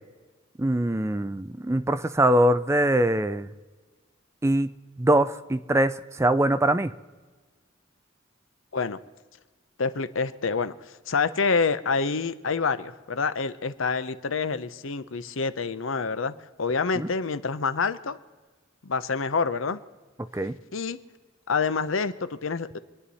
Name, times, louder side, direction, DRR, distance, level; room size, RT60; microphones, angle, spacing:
voice 1, 0.6-3.5 4.4-4.7 5.0-6.9 17.0-17.1 20.3-20.5, right 1 dB, 15° right, 12 dB, 0.4 m, -23 dB
voice 2, 9.8-18.2 18.8-19.8 20.7-21.0 21.5-22.8, left 4 dB, 75° left, 13 dB, 0.8 m, -27 dB
26.0 x 9.8 x 4.2 m, 1.3 s
head